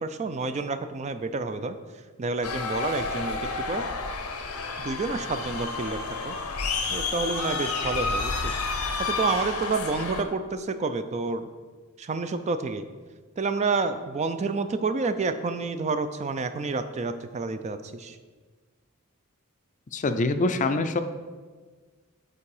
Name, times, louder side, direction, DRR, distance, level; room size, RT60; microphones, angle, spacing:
voice 1, 0.0-1.8 2.2-3.9 4.8-6.4 6.9-8.6 9.0-11.5 12.0-12.9 13.4-18.2, right 4 dB, 30° right, 10 dB, 0.4 m, -29 dB
sound 1, 2.4-10.2, left 4 dB, 85° left, 0.8 m, -30 dB
voice 2, 19.9-21.0, left 3 dB, 35° left, 9 dB, 0.4 m, -24 dB
8.4 x 4.5 x 4.8 m, 1.4 s
head